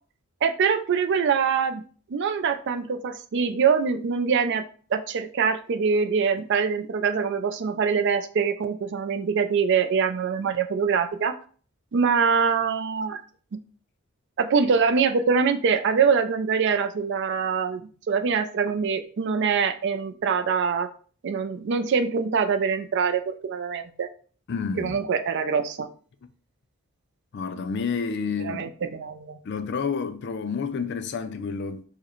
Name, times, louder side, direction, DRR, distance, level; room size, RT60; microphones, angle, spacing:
voice 1, 0.4-1.8 2.1-4.6 4.9-11.3 11.9-13.2 13.5-13.6 14.4-17.8 18.1-20.9 21.2-24.1 24.8-25.9 28.4-29.4, right 6 dB, 55° right, 0.4 m, -24 dB
voice 2, 24.5-25.0 27.3-28.7 29.4-31.8, left 5 dB, 55° left, 0.4 m, -29 dB
4.6 x 2.1 x 3.0 m
head